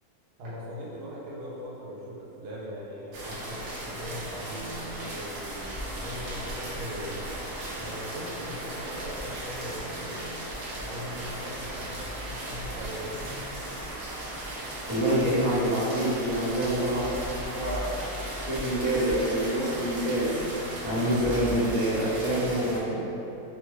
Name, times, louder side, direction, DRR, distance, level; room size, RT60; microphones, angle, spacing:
voice 1, 0.4-7.2 7.8-10.4 10.7-13.4, equal, 90° right, -5 dB, 1.2 m, -40 dB
sound 1, 3.1-22.8, right 1 dB, 65° right, 0.7 m, -36 dB
voice 2, 14.9-18.1 18.4-20.4 20.8-23.0, right 1 dB, 35° right, -12 dB, 0.9 m, -27 dB
2.9 x 2.2 x 3.1 m, 2.9 s
omnidirectional pair, 1.6 m